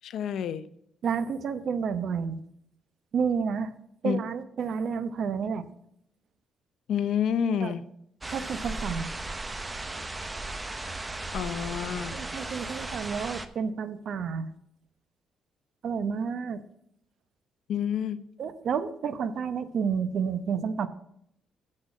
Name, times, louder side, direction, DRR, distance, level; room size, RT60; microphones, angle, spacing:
voice 1, 0.0-0.6 4.0-4.2 6.9-7.8 11.3-12.2 17.7-18.2, left 8 dB, 75° left, 14 dB, 0.6 m, -28 dB
voice 2, 1.0-2.4 3.1-3.7 4.0-5.7 7.6-7.7 8.3-9.1 12.1-14.5 15.8-16.6 18.4-20.9, right 6 dB, 65° right, 13 dB, 0.8 m, -30 dB
sound 1, 8.2-13.5, right 2 dB, 20° right, 0.8 m, -36 dB
7.8 x 6.5 x 7.5 m, 0.73 s
cardioid pair, 90°, 0 cm